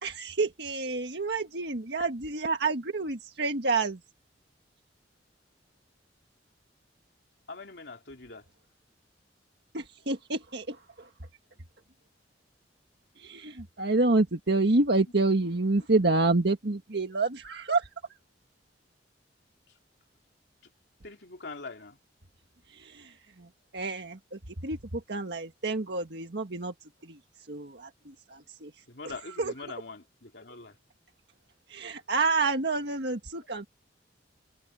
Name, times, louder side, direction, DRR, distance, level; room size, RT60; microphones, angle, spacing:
voice 1, 0.0-4.0 9.7-11.1 13.2-17.9 22.7-28.8 29.3-29.5 31.7-33.7, right 3 dB, 65° right, 1.7 m, -29 dB
voice 2, 7.5-8.5 21.0-22.0 28.9-30.8, left 3 dB, 65° left, 3.4 m, -43 dB
head